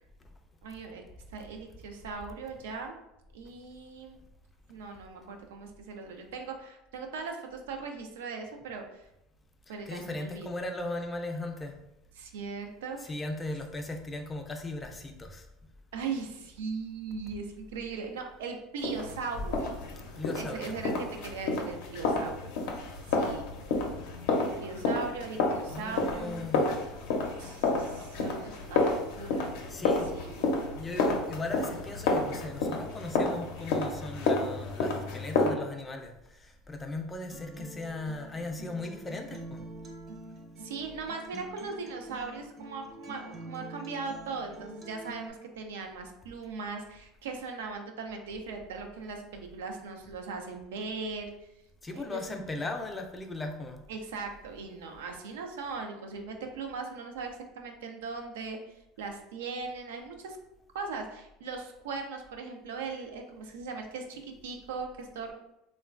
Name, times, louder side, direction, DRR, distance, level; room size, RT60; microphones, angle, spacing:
voice 1, 0.6-1.0 1.3-3.0 3.3-4.2 4.7-9.1 9.7-10.5 12.2-13.1 15.9-19.7 20.3-22.5 23.1-23.5 24.6-26.5 27.4-29.5 30.1-30.5 40.6-51.5 51.9-52.4 53.9-60.4 60.7-65.3, right 4 dB, 90° right, 4 dB, 0.4 m, -39 dB
voice 2, 9.7-11.7 13.0-15.5 20.2-20.8 25.7-26.7 29.7-30.1 30.7-39.6 51.8-53.9, left 2 dB, 20° left, 4 dB, 0.4 m, -38 dB
sound 1, 18.8-35.5, left 3 dB, 75° left, 0.5 m, -30 dB
Acoustic guitar, 37.3-45.3, right 1 dB, 35° right, 0.6 m, -46 dB
3.0 x 2.2 x 2.4 m, 0.86 s
supercardioid pair, 100°, 0 cm